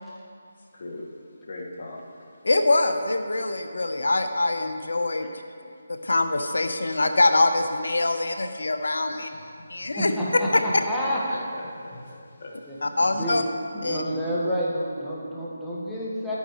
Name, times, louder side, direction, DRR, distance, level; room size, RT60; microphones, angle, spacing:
voice 1, 0.7-1.1 1.4-2.0 9.1-9.5 11.3-13.0, left 2 dB, 55° left, -2 dB, 1.8 m, -40 dB
voice 2, 2.4-5.3 6.0-9.3 9.7-10.1 10.5-10.8 12.8-13.4 13.8-14.0, left 2 dB, 75° left, 7 dB, 0.8 m, -23 dB
voice 3, 10.0-11.2 12.7-12.8 13.2-13.4 13.7-16.3, equal, 5° left, -9 dB, 1.5 m, -29 dB
11.5 x 9.3 x 3.2 m, 2.4 s
figure-of-eight pair, 160°, 0 cm